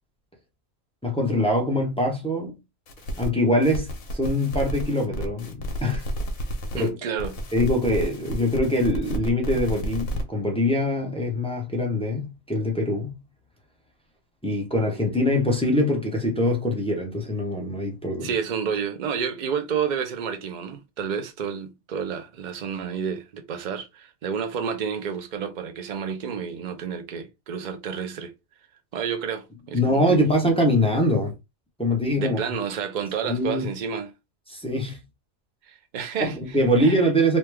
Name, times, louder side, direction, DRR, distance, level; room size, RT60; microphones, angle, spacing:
voice 1, 1.0-2.6 3.2-6.0 6.7-6.9 7.5-13.2 14.4-18.3 29.7-31.3 31.8-32.4 33.2-33.6 34.5-35.0 36.2-37.4, left 1 dB, 5° left, 0.6 m, -23 dB
sound 1, 2.9-3.3 3.6-6.9 7.2-10.2, equal, 75° left, 1.3 m, -31 dB
voice 2, 6.7-7.4 18.2-28.3 28.9-30.3 32.1-34.1 35.7-36.9, right 7 dB, 80° right, 0.4 m, -30 dB
3.1 x 2.3 x 3.3 m
omnidirectional pair, 1.4 m